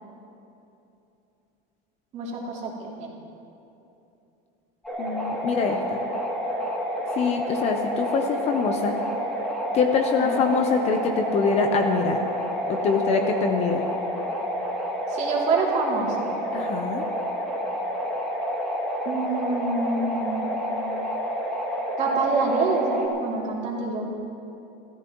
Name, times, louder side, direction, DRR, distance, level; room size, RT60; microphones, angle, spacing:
voice 1, 2.1-3.1 10.2-10.4 15.1-16.3 19.0-20.5 22.0-24.0, right 4 dB, 35° right, -3 dB, 3.0 m, -26 dB
sound 1, 4.8-23.1, equal, 5° left, 2.7 m, -29 dB
voice 2, 5.0-5.8 7.2-9.0 9.7-12.2 12.7-13.8 16.5-17.1, left 5 dB, 30° left, 5 dB, 0.8 m, -24 dB
29.0 x 14.0 x 3.1 m, 2.8 s
cardioid pair, 165°, 20 cm